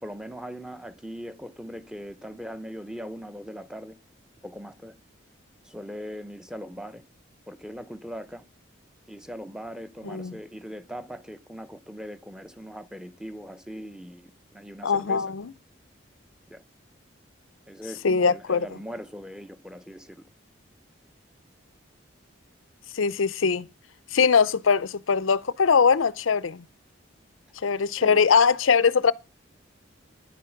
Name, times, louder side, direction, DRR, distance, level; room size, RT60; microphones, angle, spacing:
voice 1, 0.0-4.0 4.4-4.9 5.6-7.0 7.5-8.5 9.1-15.2 16.5-16.6 17.7-20.2 28.0-28.2, equal, 5° right, 0.7 m, -40 dB
voice 2, 14.8-15.5 18.0-18.7 22.9-23.7 24.1-26.6 27.6-29.1, left 5 dB, 90° left, 0.6 m, -21 dB
12.0 x 10.5 x 5.9 m
head